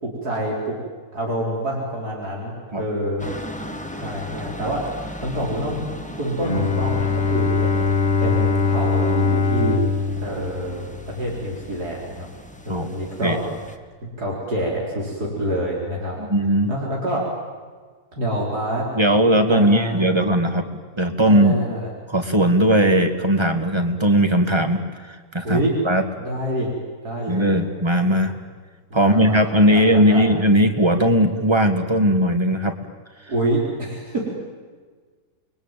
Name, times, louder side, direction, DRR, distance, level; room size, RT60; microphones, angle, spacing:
voice 1, 0.0-0.8 1.1-3.3 3.9-5.9 6.1-7.9 8.2-9.8 10.2-12.3 12.6-13.4 14.2-16.2 16.7-17.2 18.1-18.9 19.5-20.1 21.3-21.9 25.4-25.7 26.2-26.7 27.0-27.6 28.9-29.4 29.7-30.3 33.3-34.2, right 1 dB, 75° right, -3 dB, 4.9 m, -26 dB
sound 1, 3.2-13.8, equal, 5° left, 1.4 m, -37 dB
Bowed string instrument, 6.4-11.4, left 5 dB, 40° left, 2.1 m, -22 dB
voice 2, 16.2-16.7 18.9-21.6 22.1-24.8 25.1-26.0 27.3-28.3 28.9-32.7, equal, 15° right, 6 dB, 2.0 m, -18 dB
29.0 x 22.0 x 9.2 m, 1.5 s
omnidirectional pair, 1.7 m